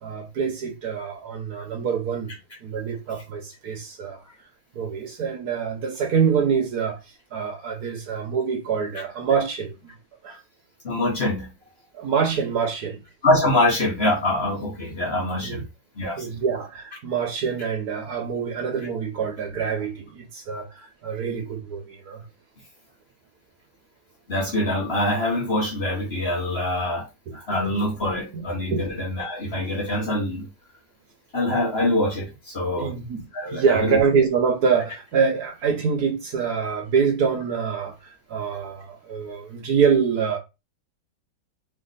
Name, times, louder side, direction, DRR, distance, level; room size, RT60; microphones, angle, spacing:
voice 1, 0.0-2.3 2.6-4.2 4.7-7.0 7.3-9.8 10.2-10.4 11.9-13.0 15.4-15.6 16.2-22.2 27.3-27.4 28.7-28.8 32.7-33.2 33.5-40.4, right 6 dB, 65° right, 1.2 m, -25 dB
voice 2, 10.8-11.5 13.2-15.6 16.0-16.3 24.3-27.1 27.3-30.4 31.3-32.9 33.3-34.0, left 1 dB, 40° left, 1.2 m, -24 dB
3.3 x 3.1 x 4.0 m
omnidirectional pair, 1.9 m